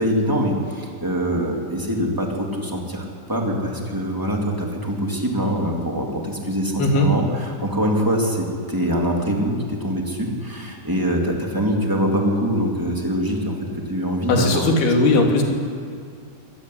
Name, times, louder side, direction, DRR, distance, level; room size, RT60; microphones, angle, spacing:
voice 1, 0.0-14.7, equal, 5° right, -1 dB, 2.9 m, -24 dB
voice 2, 14.3-15.4, left 2 dB, 85° left, 2 dB, 4.8 m, -18 dB
24.5 x 17.5 x 9.8 m, 2.2 s
omnidirectional pair, 4.4 m